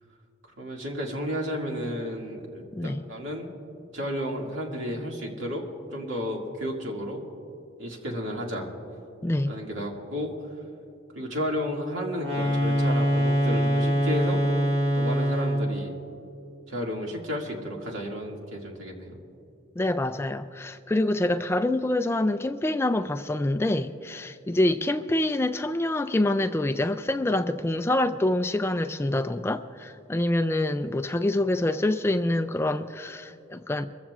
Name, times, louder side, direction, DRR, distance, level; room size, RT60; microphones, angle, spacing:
voice 1, 0.6-3.5 3.9-5.6 5.9-7.2 7.8-8.7 9.5-10.3 11.1-14.4 14.9-16.0 16.7-19.2, equal, 85° right, 2.2 m, -32 dB
voice 2, 2.7-3.0 9.2-9.5 19.8-33.9, left 1 dB, 15° left, 0.3 m, -26 dB
sound 1, 12.1-15.8, equal, 60° right, 2.4 m, -24 dB
24.0 x 14.5 x 2.4 m
head